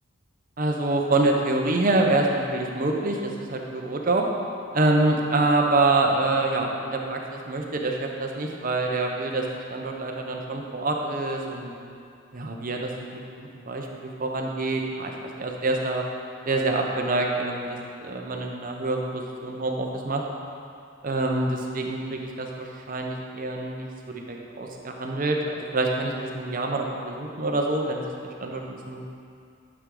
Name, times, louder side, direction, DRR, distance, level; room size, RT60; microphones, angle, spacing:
voice 1, 0.6-4.2 4.7-11.7 12.3-16.0 16.5-20.2 21.0-23.9 24.1-29.1, right 2 dB, 40° right, 1 dB, 0.8 m, -26 dB
9.9 x 6.1 x 3.8 m, 2.4 s
head